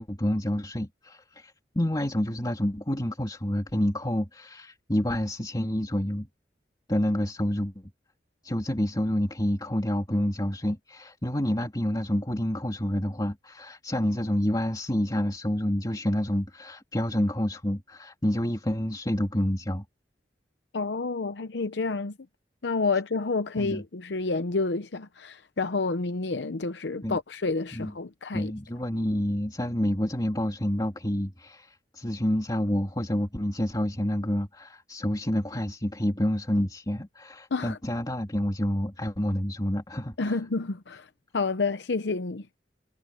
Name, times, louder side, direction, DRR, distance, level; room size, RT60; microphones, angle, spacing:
voice 1, 0.0-6.3 6.9-7.9 8.4-19.8 23.6-23.8 27.0-27.2 27.7-27.9 28.3-40.4, equal, 25° left, 3.0 m, -28 dB
voice 2, 20.7-22.1 22.6-28.5 37.5-37.8 40.2-41.1 41.3-42.5, left 3 dB, 75° left, 0.8 m, -29 dB
head